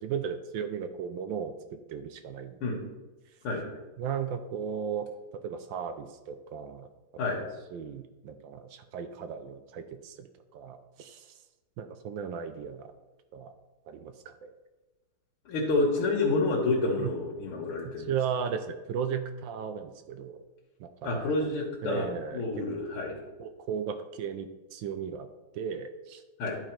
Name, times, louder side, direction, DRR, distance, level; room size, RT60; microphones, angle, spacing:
voice 1, 0.0-2.9 4.0-5.1 5.4-6.9 7.4-11.3 11.8-12.9 13.3-13.5 13.9-14.5 17.0-17.1 18.1-20.4 20.8-21.3 21.8-22.4 23.4-25.3 25.5-26.2, right 7 dB, 75° right, 9 dB, 1.2 m, -36 dB
voice 2, 3.4-3.8 7.2-7.4 15.5-18.1 21.0-23.2 26.4-26.6, left 3 dB, 80° left, -3 dB, 2.1 m, -29 dB
10.5 x 4.7 x 4.4 m, 1.1 s
omnidirectional pair, 2.4 m